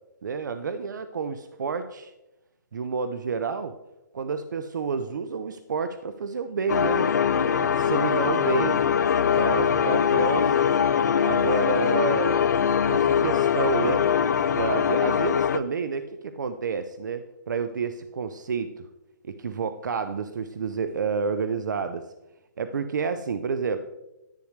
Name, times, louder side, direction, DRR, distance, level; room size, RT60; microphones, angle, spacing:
voice 1, 0.2-2.1 2.7-3.7 4.1-7.1 7.6-8.8 9.4-10.7 11.2-12.5 12.9-14.1 14.5-18.8 19.2-22.1 22.6-23.8, right 5 dB, 75° right, 10 dB, 0.6 m, -29 dB
sound 1, 6.7-15.6, left 7 dB, 65° left, 0.5 m, -22 dB
10.5 x 9.5 x 3.2 m, 0.96 s
hypercardioid pair, 175°, 10 cm